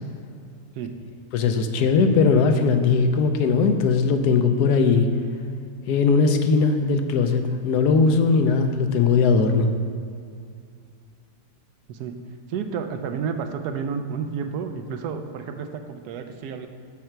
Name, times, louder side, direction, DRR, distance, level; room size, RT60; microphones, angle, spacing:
voice 1, 1.3-5.1 5.9-9.7, left 4 dB, 75° left, 7 dB, 1.1 m, -19 dB
voice 2, 12.5-16.7, right 6 dB, 80° right, 7 dB, 1.1 m, -31 dB
7.5 x 5.7 x 4.4 m, 2.3 s
omnidirectional pair, 1.7 m